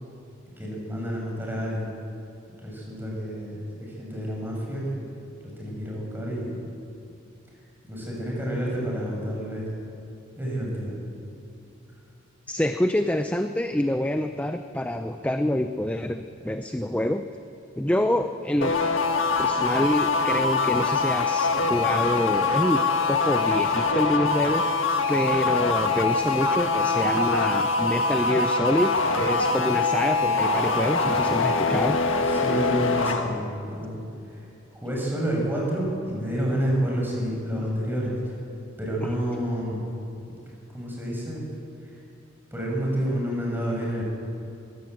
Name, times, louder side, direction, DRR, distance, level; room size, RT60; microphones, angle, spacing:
voice 1, 0.5-1.9 2.6-5.0 5.6-6.5 7.5-7.6 7.8-9.6 10.4-11.0 32.3-38.3 38.8-39.8 40.7-41.4 41.8-42.0 42.5-44.0, equal, 10° right, -3 dB, 6.2 m, -29 dB
voice 2, 12.5-17.2 17.8-18.7 19.4-22.8 23.1-24.6 25.1-32.0, left 1 dB, 5° left, 7 dB, 0.5 m, -26 dB
sound 1, 18.6-33.2, left 3 dB, 75° left, 1.6 m, -23 dB
22.0 x 16.5 x 7.9 m, 2.6 s
head